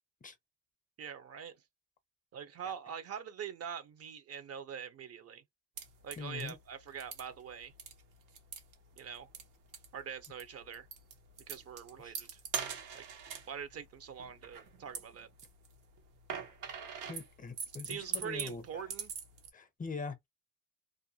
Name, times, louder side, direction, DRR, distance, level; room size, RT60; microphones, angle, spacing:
voice 1, 1.0-1.6 2.3-5.4 6.0-7.7 9.0-9.3 9.9-10.9 11.5-12.3 12.9-13.1 13.5-15.3 17.8-19.1, right 8 dB, 55° right, 0.6 m, -43 dB
sound 1, 5.8-19.5, right 6 dB, 85° right, 0.9 m, -44 dB
voice 2, 6.2-6.6 12.0-12.1 17.1-18.8 19.5-20.3, left 4 dB, 25° left, 0.6 m, -43 dB
2.5 x 2.1 x 2.7 m
cardioid pair, 90°, 30 cm